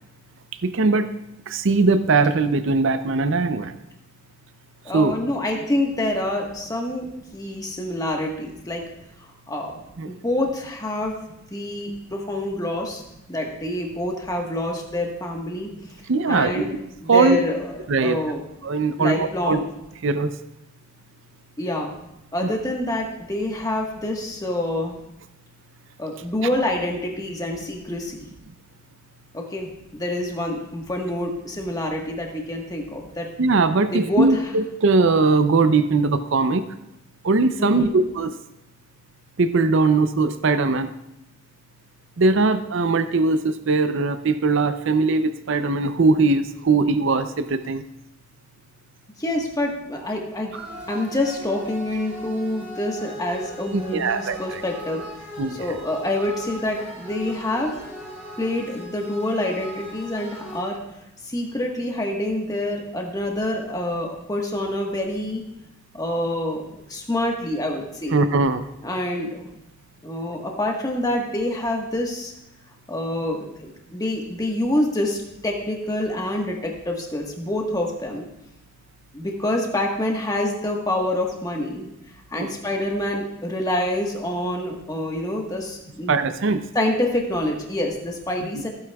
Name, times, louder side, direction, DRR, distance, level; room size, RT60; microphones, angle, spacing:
voice 1, 0.6-1.1 1.5-3.7 4.9-5.2 10.0-10.1 16.1-16.6 17.1-17.4 17.9-18.2 18.6-19.6 20.0-20.3 22.4-22.5 33.4-36.6 37.2-38.3 39.4-40.9 42.2-47.8 53.7-54.6 55.4-55.7 68.1-68.6 82.4-82.5 86.1-86.6, right 3 dB, 60° right, 11 dB, 0.5 m, -20 dB
voice 2, 4.8-7.1 7.3-8.8 9.2-9.7 10.0-11.1 11.5-13.0 13.3-15.7 16.3-16.7 17.0-18.4 19.0-19.7 21.6-21.9 22.3-24.9 26.0-28.3 29.3-33.3 33.9-34.3 37.6-38.0 49.2-50.6 50.9-57.8 58.4-60.8 61.2-65.4 65.9-68.2 68.8-69.4 70.0-72.3 72.9-78.3 79.1-81.9 82.3-86.1 86.7-88.7, left 1 dB, 15° left, 1 dB, 1.3 m, -27 dB
sound 1, 50.5-60.6, equal, 5° right, 3.3 m, -39 dB
15.0 x 8.6 x 2.3 m, 0.85 s
head